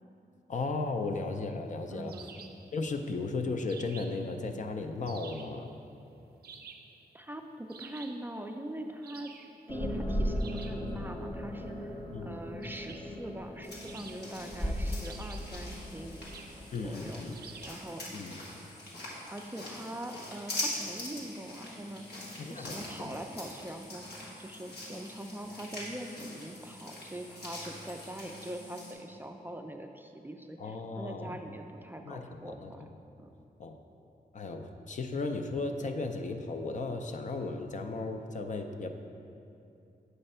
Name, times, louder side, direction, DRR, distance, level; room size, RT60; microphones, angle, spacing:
voice 1, 0.5-2.1 2.7-5.7 12.1-12.4 16.7-17.4 18.1-18.4 22.4-23.2 30.6-31.4 32.1-32.9 33.6-33.8 34.3-38.9, left 3 dB, 50° left, 5 dB, 0.4 m, -35 dB
voice 2, 1.9-2.3 7.1-9.3 9.7-16.2 16.8-18.0 19.3-22.2 22.5-24.0 24.4-32.8 33.2-33.3, right 1 dB, 10° right, 4 dB, 0.3 m, -43 dB
sound 1, 2.1-2.7 3.7-4.3 5.1-5.6 6.4-7.0 7.7-8.2 9.0-9.5 10.4-10.8 12.6-13.1 13.8-14.5 15.0-15.6 16.3-16.6 17.3-17.9, right 6 dB, 70° right, 0.5 m, -50 dB
sound 2, 9.7-17.7, equal, 30° left, 0.9 m, -37 dB
sound 3, 13.6-28.9, left 1 dB, 85° left, 1.3 m, -43 dB
7.9 x 3.2 x 5.4 m, 2.7 s
wide cardioid pair, 90°, 16 cm